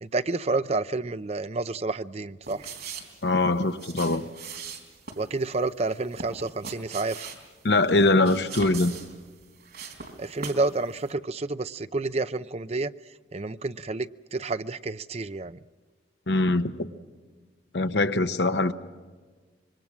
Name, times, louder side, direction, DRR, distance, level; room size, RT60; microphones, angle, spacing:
voice 1, 0.0-2.7 5.2-7.3 10.2-12.9 13.3-15.6, right 3 dB, 35° right, 0.6 m, -29 dB
sound 1, 2.4-10.7 11.0-11.1, right 5 dB, 60° right, 3.9 m, -41 dB
voice 2, 3.2-4.3 7.6-9.0 16.3-16.8 17.7-18.7, left 2 dB, 75° left, 1.1 m, -22 dB
26.0 x 23.5 x 6.2 m
head